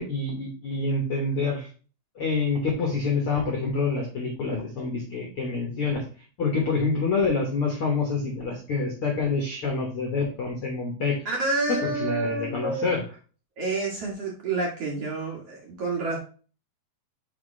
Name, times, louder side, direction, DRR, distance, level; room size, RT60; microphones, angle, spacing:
voice 1, 0.0-1.7 2.2-6.0 6.4-11.2 12.0-13.0, left 4 dB, 70° left, 0 dB, 1.3 m, -27 dB
voice 2, 11.3-12.9 13.6-16.2, right 3 dB, 50° right, -2 dB, 2.0 m, -28 dB
6.0 x 5.3 x 3.2 m, 0.37 s
omnidirectional pair, 4.5 m